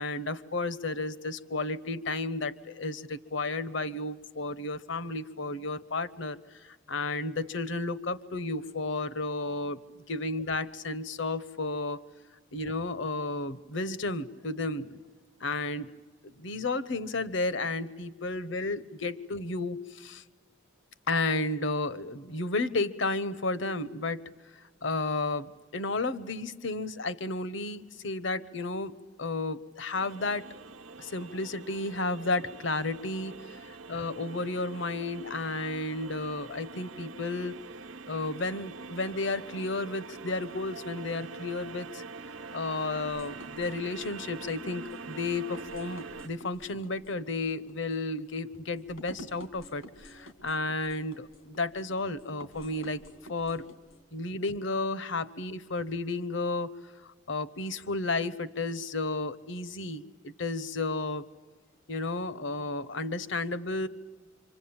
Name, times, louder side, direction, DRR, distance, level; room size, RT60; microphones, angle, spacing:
voice 1, 0.0-9.8 10.1-12.0 12.5-15.0 15.4-15.9 16.2-20.2 21.1-24.2 24.8-30.4 31.0-37.6 38.1-42.0 42.5-53.0 53.3-53.6 54.1-56.7 57.0-61.2 61.9-63.9, left 2 dB, 65° left, 16 dB, 0.9 m, -32 dB
sound 1, 29.9-46.3, right 4 dB, 80° right, 1.0 m, -44 dB
sound 2, 43.0-54.0, left 1 dB, 90° left, 3.1 m, -51 dB
26.0 x 25.5 x 8.8 m, 1.3 s
head